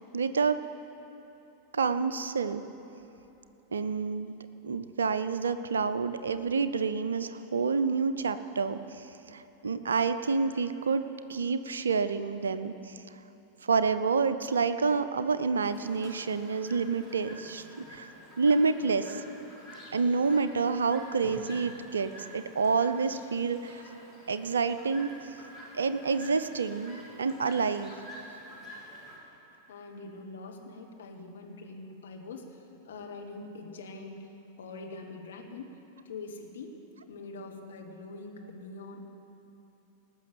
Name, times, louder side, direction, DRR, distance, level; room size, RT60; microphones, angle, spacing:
voice 1, 0.1-0.6 1.7-2.6 3.7-4.3 4.6-11.0 11.3-13.0 13.6-18.1 18.4-19.2 19.9-23.8 24.3-25.1 25.7-27.9, right 5 dB, 70° right, 12 dB, 0.5 m, -28 dB
Chirp tweet, 15.6-29.2, equal, 5° left, 3.2 m, -49 dB
voice 2, 29.7-34.3 34.6-35.7 36.0-36.7 37.1-39.1, left 3 dB, 65° left, 2 dB, 1.4 m, -44 dB
18.5 x 6.3 x 7.8 m, 2.9 s
figure-of-eight pair, 90°, 0 cm